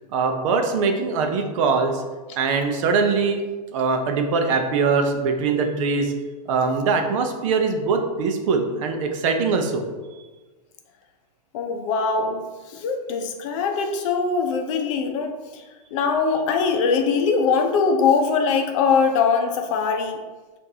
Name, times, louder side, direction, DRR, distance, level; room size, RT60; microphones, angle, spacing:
voice 1, 0.1-2.0 2.4-3.4 3.7-6.1 6.5-9.8, right 4 dB, 50° right, 4 dB, 0.6 m, -22 dB
voice 2, 11.5-12.4 12.7-15.6 15.9-20.2, left 5 dB, 50° left, 5 dB, 0.6 m, -22 dB
6.5 x 2.6 x 2.8 m, 1.3 s
hypercardioid pair, 140°, 21 cm